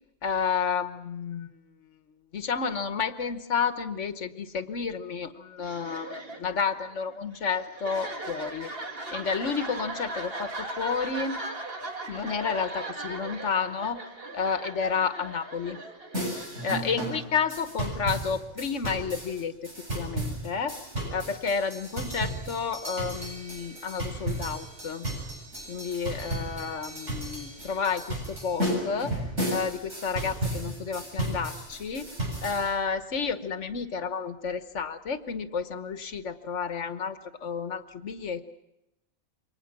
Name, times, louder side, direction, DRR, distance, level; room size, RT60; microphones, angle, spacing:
voice 1, 0.2-1.5 2.3-8.7 9.1-11.4 12.1-14.0 14.3-15.8 16.6-20.8 21.1-25.1 25.7-29.1 29.5-32.1 32.4-38.4, left 6 dB, 80° left, 10 dB, 1.5 m, -31 dB
sound 1, 5.6-17.3, right 2 dB, 50° right, 2.6 m, -38 dB
sound 2, 16.1-32.7, right 1 dB, 75° right, 7.9 m, -34 dB
28.0 x 24.0 x 6.0 m, 0.90 s
omnidirectional pair, 1.2 m